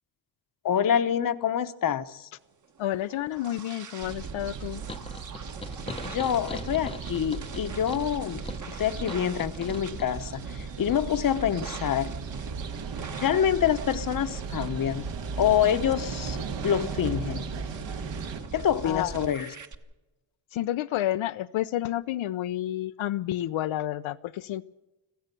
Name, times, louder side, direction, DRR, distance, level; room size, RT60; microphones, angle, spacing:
voice 1, 0.6-2.3 6.0-12.1 13.2-16.4 16.6-17.4 18.5-19.5, left 9 dB, 45° left, 11 dB, 1.0 m, -26 dB
voice 2, 2.8-4.8 18.8-19.2 20.5-24.6, left 13 dB, 75° left, 10 dB, 0.7 m, -30 dB
sound 1, 2.8-19.8, right 5 dB, 40° right, 1.4 m, -40 dB
sound 2, 4.0-18.4, right 5 dB, 65° right, 1.8 m, -38 dB
sound 3, 4.9-10.1, left 3 dB, 10° left, 0.8 m, -42 dB
26.5 x 15.0 x 6.8 m, 1.0 s
cardioid pair, 155°, 48 cm